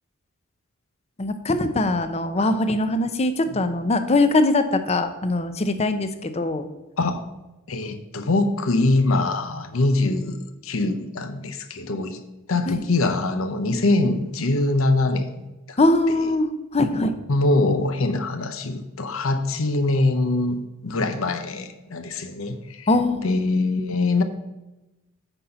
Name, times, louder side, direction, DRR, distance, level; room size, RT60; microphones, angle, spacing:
voice 1, 1.2-6.7 12.7-12.8 15.8-17.1 22.9-23.4, left 2 dB, 30° left, 9 dB, 0.6 m, -22 dB
voice 2, 7.7-10.4 10.6-12.2 12.5-15.4 15.7-15.8 17.3-20.6 20.8-22.9 23.2-24.2, left 2 dB, 80° left, 9 dB, 0.8 m, -23 dB
9.0 x 4.2 x 5.7 m, 1.0 s
head